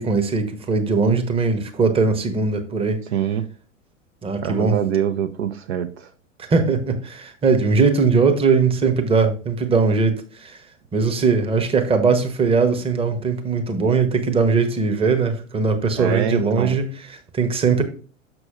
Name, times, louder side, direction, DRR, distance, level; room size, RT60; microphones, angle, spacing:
voice 1, 0.0-3.0 4.2-4.8 6.5-10.6 10.9-17.8, right 4 dB, 15° right, 1.0 m, -20 dB
voice 2, 3.1-3.4 4.4-6.1 16.0-16.8, right 9 dB, 55° right, 0.7 m, -24 dB
6.3 x 6.1 x 3.7 m
figure-of-eight pair, 90°, 39 cm